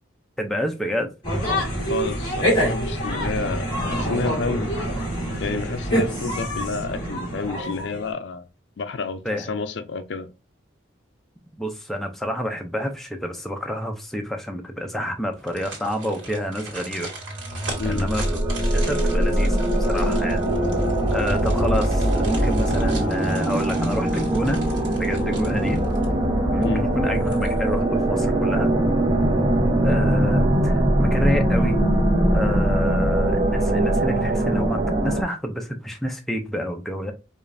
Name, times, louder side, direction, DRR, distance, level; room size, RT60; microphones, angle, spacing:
voice 1, 0.4-1.1 9.2-9.5 11.6-17.3 17.8-18.2 18.6-20.4 21.1-24.6 25.0-25.8 26.5-28.7 29.8-31.8 32.3-37.1, equal, ahead, 0.5 m, -28 dB
sound 1, 1.2-8.1, equal, 25° left, 1.9 m, -26 dB
voice 2, 1.9-4.7 5.4-8.5 8.8-10.3 17.8-18.1 26.6-26.9, left 4 dB, 65° left, 0.4 m, -29 dB
sound 2, 15.3-26.3 26.6-26.7 27.1-27.8 28.2-28.3, right 3 dB, 90° right, 1.7 m, -39 dB
sound 3, 17.2-35.2, right 1 dB, 25° right, 0.8 m, -21 dB
4.9 x 2.4 x 2.6 m
head